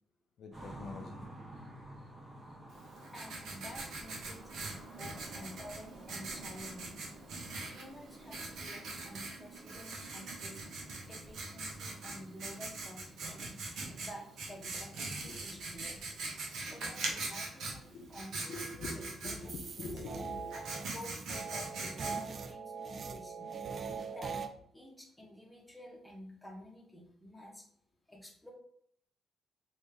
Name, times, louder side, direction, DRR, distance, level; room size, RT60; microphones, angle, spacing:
voice 1, 0.4-1.3 15.2-15.6 17.8-20.5 23.9-24.0, left 3 dB, 65° left, 3 dB, 0.5 m, -45 dB
sound 1, 0.5-10.7 11.0-11.9 12.2-12.3 12.7-13.6 13.8-13.9 14.2-17.0, right 1 dB, 30° right, 0.9 m, -54 dB
Writing, 2.7-22.5, right 3 dB, 75° right, 0.9 m, -42 dB
voice 2, 3.1-7.0 7.7-10.6 11.1-13.5 14.0-16.0 16.7-19.3 19.8-19.9 20.5-20.7 20.9-21.9 22.3-23.5 24.1-24.4 24.7-27.6 28.1-28.5, left 1 dB, 5° left, -2 dB, 1.0 m, -50 dB
sound 2, 19.4-24.5, right 5 dB, 45° right, 0.3 m, -42 dB
3.2 x 2.7 x 3.3 m, 0.67 s
cardioid pair, 90°, 0 cm